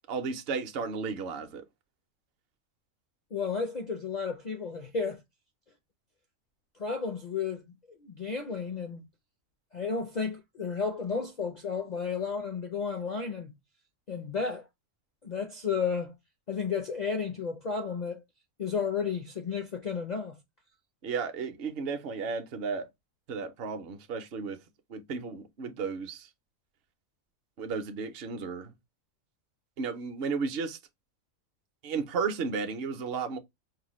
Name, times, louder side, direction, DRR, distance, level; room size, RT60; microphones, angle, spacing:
voice 1, 0.1-1.6 21.0-22.9 23.3-24.6 24.9-26.3 27.6-28.7 29.8-30.8 31.8-33.4, right 5 dB, 55° right, 0.8 m, -33 dB
voice 2, 3.3-5.2 6.8-9.0 9.7-13.5 14.1-14.7 15.2-16.1 16.5-18.2 18.6-20.4, left 5 dB, 55° left, 0.5 m, -32 dB
4.7 x 2.1 x 3.0 m
omnidirectional pair, 1.4 m